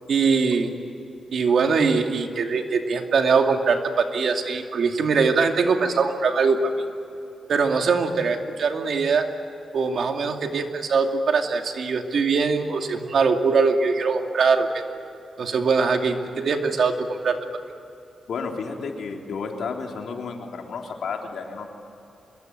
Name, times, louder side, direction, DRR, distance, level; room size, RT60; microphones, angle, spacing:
voice 1, 0.1-0.7 1.3-6.6 7.5-9.3 9.7-14.8 15.4-17.4, right 5 dB, 70° right, 4 dB, 2.5 m, -22 dB
voice 2, 18.3-21.6, left 5 dB, 80° left, 2 dB, 3.5 m, -32 dB
25.5 x 22.0 x 9.3 m, 2.8 s
cardioid pair, 100°, 0 cm